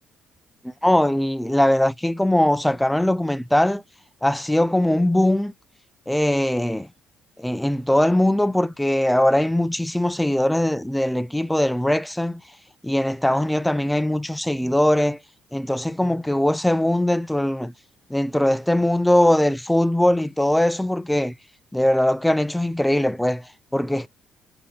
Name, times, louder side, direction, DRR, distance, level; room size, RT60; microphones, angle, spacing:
voice 1, 0.8-3.8 4.2-5.5 6.1-6.9 7.4-12.4 12.8-15.2 15.5-17.7 18.1-21.3 21.7-23.4 23.7-24.1, left 1 dB, 5° left, 0.3 m, -21 dB
5.2 x 2.7 x 3.6 m
supercardioid pair, 70°, 0 cm